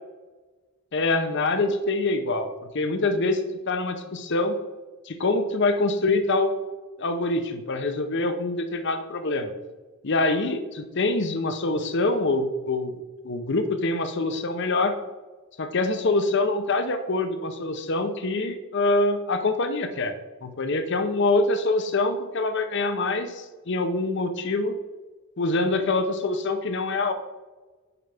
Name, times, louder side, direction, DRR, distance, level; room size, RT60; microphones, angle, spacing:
voice 1, 0.9-2.5 2.7-4.6 5.1-6.5 7.0-9.5 10.0-12.9 13.2-15.0 15.6-20.1 20.4-24.7 25.4-27.1, left 2 dB, 55° left, 8 dB, 0.7 m, -25 dB
9.8 x 5.4 x 3.4 m, 1.3 s
head